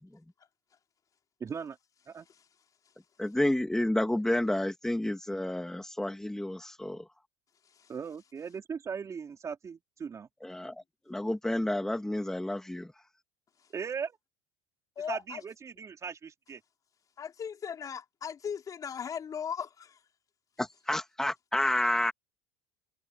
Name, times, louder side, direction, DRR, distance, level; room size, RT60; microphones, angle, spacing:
voice 1, 1.4-1.8 2.1-2.3 7.9-10.3 13.7-14.2 15.1-16.6, right 6 dB, 25° right, 3.5 m, -38 dB
voice 2, 3.2-7.0 10.4-10.7 11.1-12.9 20.6-22.1, left 1 dB, 5° left, 2.4 m, -30 dB
voice 3, 15.0-15.4 17.2-20.0, left 7 dB, 30° left, 4.5 m, -38 dB
supercardioid pair, 120°, 11 cm